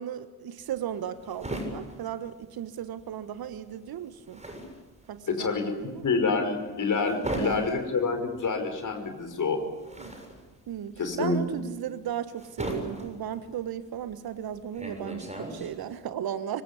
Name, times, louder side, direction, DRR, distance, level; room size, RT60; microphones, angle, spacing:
voice 1, 0.0-4.4 5.1-6.1 7.3-7.8 10.0-10.1 10.7-16.6, right 10 dB, 50° right, 13 dB, 1.6 m, -36 dB
sound 1, 0.6-3.1 3.4-16.0, right 1 dB, 15° right, 7.0 m, -39 dB
voice 2, 5.3-5.7 6.0-9.6 11.0-11.4, left 4 dB, 40° left, 6 dB, 5.5 m, -27 dB
25.5 x 25.0 x 8.3 m, 1.3 s
figure-of-eight pair, 45°, 48 cm